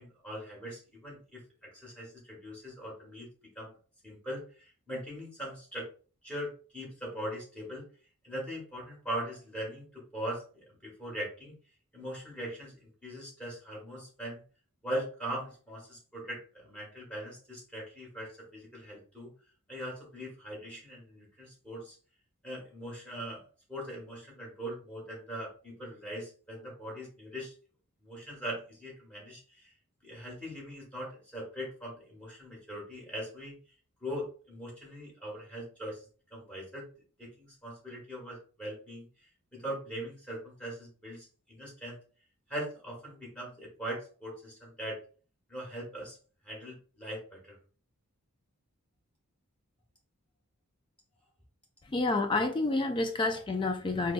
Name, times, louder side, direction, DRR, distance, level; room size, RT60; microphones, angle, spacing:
voice 1, 0.0-3.3 3.5-3.7 4.0-5.9 6.2-7.8 8.2-11.5 11.9-14.4 14.8-19.3 19.7-21.9 22.4-23.4 23.7-27.5 28.0-29.7 30.0-33.5 34.0-36.9 37.2-39.1 39.5-42.0 42.5-45.0 45.5-46.2 46.4-47.6, equal, 5° left, -4 dB, 1.6 m, -41 dB
voice 2, 51.9-54.1, left 2 dB, 20° left, 5 dB, 0.3 m, -29 dB
4.7 x 2.2 x 2.5 m, 0.39 s
head